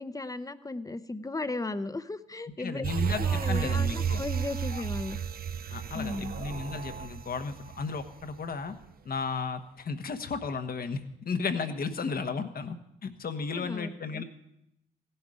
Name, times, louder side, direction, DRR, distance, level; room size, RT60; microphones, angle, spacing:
voice 1, 0.0-2.8 3.2-5.2 5.9-6.3 13.5-14.2, left 2 dB, 20° left, 12 dB, 0.8 m, -36 dB
voice 2, 2.6-4.2 4.7-4.8 5.7-8.7 9.0-12.8 13.0-14.2, left 5 dB, 60° left, 8 dB, 1.3 m, -34 dB
sound 1, 2.8-8.5 8.8-8.9, right 7 dB, 60° right, 0.6 m, -32 dB
16.0 x 11.0 x 5.0 m, 0.81 s
cardioid pair, 60°, 18 cm